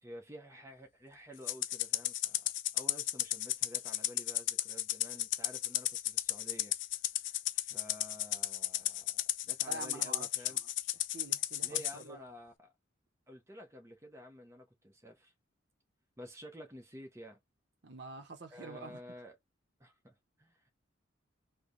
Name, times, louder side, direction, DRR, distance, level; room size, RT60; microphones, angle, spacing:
voice 1, 0.0-10.6 11.6-12.5 13.3-15.3 16.2-17.4 18.5-19.4 19.8-20.7, equal, 15° right, 0.7 m, -51 dB
Rattle (instrument), 1.5-11.9, left 14 dB, 65° left, 0.4 m, -34 dB
voice 2, 9.7-12.2 17.8-19.0, right 3 dB, 55° right, 0.8 m, -47 dB
3.2 x 2.2 x 3.8 m
head